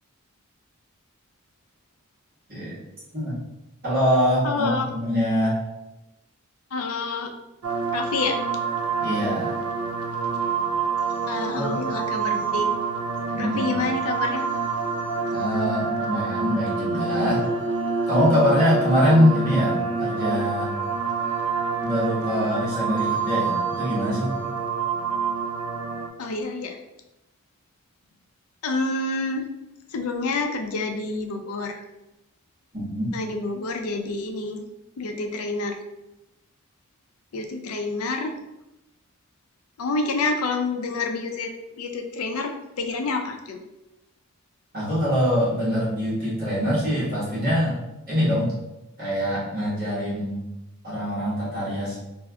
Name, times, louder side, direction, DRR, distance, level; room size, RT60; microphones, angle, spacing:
voice 1, 3.8-5.6 9.0-9.5 11.5-11.7 13.3-13.8 15.3-17.4 18.1-20.7 21.8-24.4 32.7-33.1 44.7-47.8 48.1-48.5 49.0-50.4 50.8-51.9, equal, 40° right, -10 dB, 1.4 m, -23 dB
voice 2, 4.4-4.9 6.7-7.3 7.9-8.4 11.3-12.7 13.4-14.4 26.2-26.8 28.6-29.5 29.9-31.8 33.1-34.6 35.0-35.8 37.3-38.4 39.8-42.5 42.8-43.6, left 3 dB, 80° left, 4 dB, 0.5 m, -28 dB
sound 1, 7.6-26.1, right 5 dB, 80° right, 0.4 m, -27 dB
4.3 x 2.6 x 2.3 m, 0.96 s
head